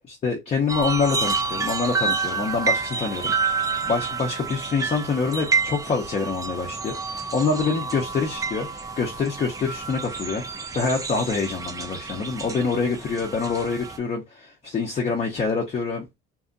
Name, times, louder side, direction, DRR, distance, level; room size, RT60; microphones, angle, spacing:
voice 1, 0.1-16.0, left 4 dB, 35° left, 0.6 m, -26 dB
sound 1, 0.7-14.0, right 4 dB, 15° right, 0.4 m, -29 dB
2.7 x 2.5 x 2.4 m
cardioid pair, 125°, 20 cm